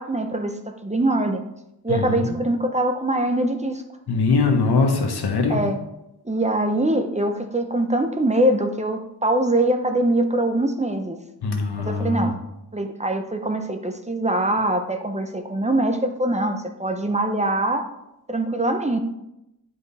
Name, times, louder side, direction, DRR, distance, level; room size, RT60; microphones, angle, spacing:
voice 1, 0.0-1.4 1.8-3.8 5.5-5.8 6.2-11.2 11.8-12.4 12.7-17.9 18.3-19.0, right 1 dB, 20° right, 5 dB, 0.7 m, -23 dB
voice 2, 1.9-2.3 4.1-5.6 11.4-12.2, left 4 dB, 85° left, 2 dB, 1.5 m, -21 dB
9.5 x 5.1 x 4.2 m, 0.89 s
wide cardioid pair, 100°, 38 cm